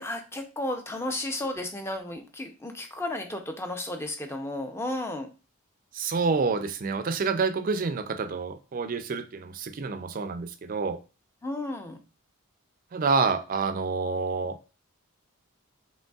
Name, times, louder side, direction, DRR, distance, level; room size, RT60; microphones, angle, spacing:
voice 1, 0.0-5.3 11.4-12.0, left 1 dB, 10° left, 0.5 m, -33 dB
voice 2, 5.9-11.0 12.9-14.6, right 4 dB, 40° right, 0.4 m, -28 dB
5.2 x 3.2 x 2.3 m
head